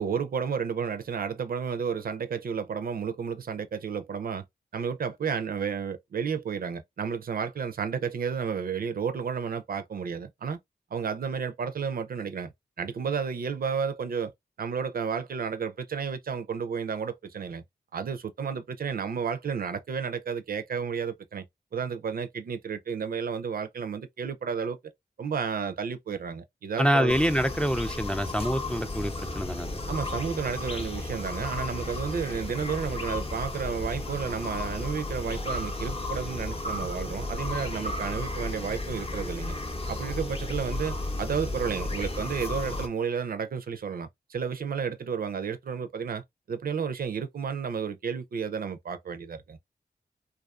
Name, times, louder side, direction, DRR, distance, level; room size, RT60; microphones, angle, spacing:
voice 1, 0.0-4.5 4.7-10.6 10.9-12.5 12.8-14.3 14.6-17.6 17.9-21.4 21.7-24.8 25.2-27.1 29.9-39.6 39.9-46.2 46.5-49.6, right 6 dB, 65° right, 0.4 m, -32 dB
voice 2, 26.8-29.7, equal, 5° left, 0.3 m, -26 dB
sound 1, 27.1-42.9, left 2 dB, 35° left, 0.7 m, -34 dB
2.4 x 2.3 x 2.3 m
cardioid pair, 50°, 17 cm